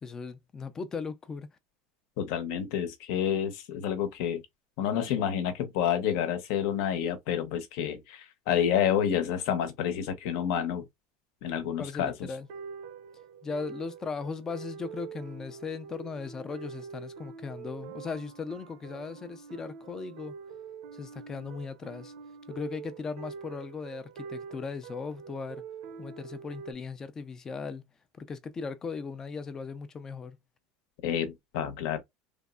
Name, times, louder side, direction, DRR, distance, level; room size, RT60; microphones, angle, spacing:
voice 1, 0.0-1.5 11.8-12.5 13.4-20.3 20.9-22.1 22.5-25.6 26.0-27.9 28.2-30.4, left 5 dB, 20° left, 0.4 m, -38 dB
voice 2, 2.2-4.4 4.8-10.8 11.4-12.3 31.0-32.0, left 9 dB, 65° left, 0.7 m, -29 dB
sound 1, 12.3-26.7, right 6 dB, 70° right, 0.6 m, -45 dB
3.3 x 2.0 x 2.3 m
cardioid pair, 155°, 3 cm